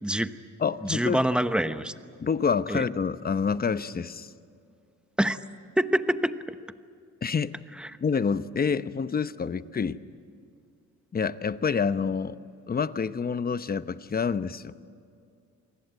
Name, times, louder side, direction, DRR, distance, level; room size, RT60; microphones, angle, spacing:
voice 1, 0.0-0.3 0.8-1.9 2.7-2.8 5.2-5.4 5.8-6.6 7.8-7.9, right 1 dB, 5° right, 11 dB, 1.0 m, -26 dB
voice 2, 0.6-1.2 2.2-4.3 7.2-7.6 8.0-10.0 11.1-12.4 12.7-14.7, left 6 dB, 30° left, 13 dB, 0.9 m, -27 dB
27.5 x 19.5 x 9.2 m, 2.3 s
cardioid pair, 90°, 30 cm